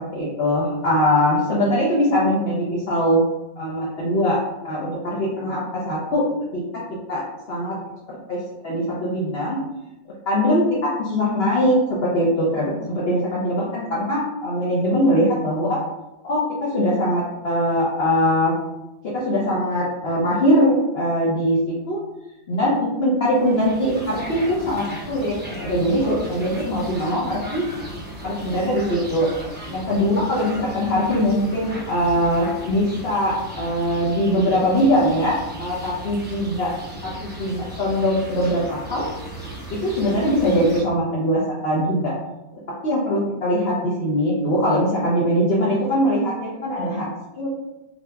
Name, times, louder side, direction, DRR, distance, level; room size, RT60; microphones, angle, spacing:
voice 1, 0.1-3.2 3.6-4.4 4.6-6.2 6.5-6.6 7.1-7.2 7.5-7.8 8.1-9.6 10.3-15.8 16.2-18.5 19.1-21.6 21.9-22.0 22.5-27.7 28.2-29.3 29.7-36.7 37.0-39.1 39.7-42.1 42.8-47.1 47.4-47.5, equal, 55° left, -6 dB, 0.8 m, -21 dB
sound 1, 23.2-40.8, right 1 dB, 10° right, 0.4 m, -36 dB
3.9 x 2.7 x 2.3 m, 0.99 s
omnidirectional pair, 1.5 m